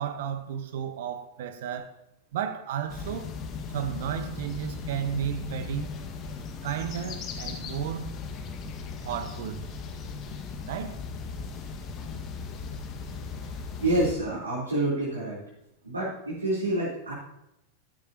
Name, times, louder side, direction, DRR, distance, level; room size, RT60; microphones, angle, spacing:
voice 1, 0.0-1.9 2.3-3.3 3.7-5.9 6.6-8.1 9.0-9.6 10.6-11.0, right 9 dB, 55° right, 1.3 m, -33 dB
sound 1, 2.9-14.1, left 5 dB, 35° left, 1.9 m, -37 dB
voice 2, 13.8-15.4 15.8-17.1, right 1 dB, 80° right, 4.1 m, -27 dB
14.5 x 12.0 x 3.0 m
figure-of-eight pair, 90°, 0 cm